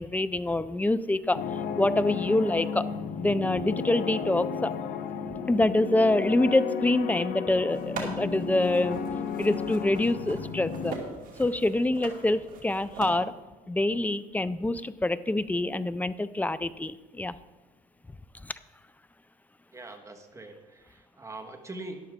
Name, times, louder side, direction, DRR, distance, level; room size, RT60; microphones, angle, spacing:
voice 1, 0.0-2.9 3.2-4.7 5.5-9.0 9.4-11.0 11.4-13.3 13.7-17.4 18.4-18.5, left 2 dB, 10° left, 16 dB, 0.4 m, -26 dB
sound 1, 1.3-11.0, left 6 dB, 70° left, 0.9 m, -33 dB
sound 2, 7.7-13.1, right 4 dB, 55° right, 2.4 m, -42 dB
voice 2, 19.7-22.0, right 2 dB, 15° right, 5 dB, 1.5 m, -42 dB
12.5 x 11.5 x 3.6 m, 1.2 s
cardioid pair, 110°, 17 cm